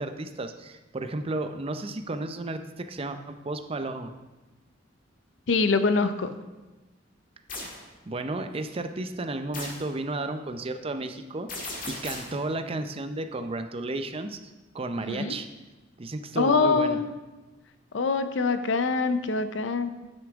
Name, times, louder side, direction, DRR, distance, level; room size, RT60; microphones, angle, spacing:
voice 1, 0.0-4.1 8.1-14.4 14.7-15.5 16.0-17.0, right 2 dB, 30° right, 8 dB, 0.6 m, -33 dB
voice 2, 5.5-6.3 15.1-15.4 16.4-17.1 17.9-20.1, left 4 dB, 70° left, 11 dB, 0.6 m, -24 dB
sound 1, 7.5-7.8 9.5-9.9 11.5-12.4, left 2 dB, 45° left, 1.9 m, -37 dB
9.3 x 8.5 x 3.6 m, 1.1 s
head